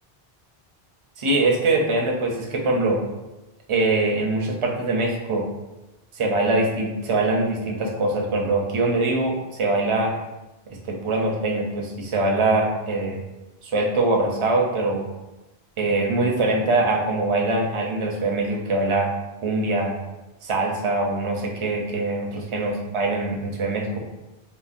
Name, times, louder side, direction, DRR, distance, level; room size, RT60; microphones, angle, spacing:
voice 1, 1.2-3.0 3.7-5.4 6.2-10.1 10.8-13.2 13.6-15.1 15.8-19.1 19.4-19.9 20.4-24.0, right 2 dB, 45° right, 0 dB, 0.4 m, -23 dB
3.8 x 2.0 x 2.4 m, 1.0 s
omnidirectional pair, 1.1 m